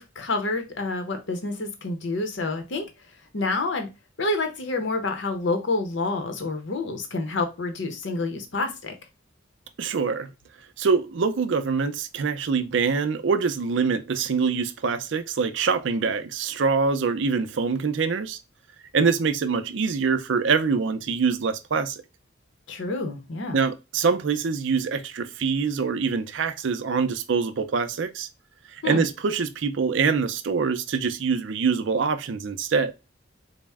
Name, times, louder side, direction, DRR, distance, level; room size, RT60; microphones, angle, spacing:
voice 1, 0.0-2.9 3.3-3.9 4.2-8.9 22.7-23.6 28.8-29.0, left 3 dB, 65° left, 0.7 m, -28 dB
voice 2, 9.8-10.3 10.8-18.4 18.9-22.0 23.5-28.3 28.7-32.9, right 5 dB, 65° right, 0.5 m, -24 dB
4.2 x 2.0 x 3.4 m
head